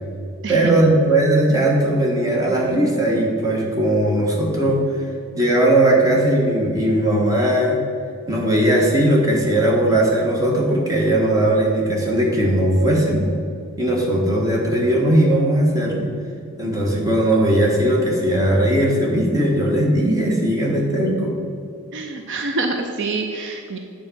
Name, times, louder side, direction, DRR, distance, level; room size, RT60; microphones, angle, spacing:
voice 1, 0.5-5.0 5.3-7.8 8.3-13.3 13.8-16.1 16.6-21.4, right 1 dB, 15° right, -3 dB, 1.4 m, -18 dB
voice 2, 21.9-23.8, right 3 dB, 55° right, 4 dB, 0.6 m, -26 dB
8.8 x 4.1 x 6.2 m, 2.4 s
head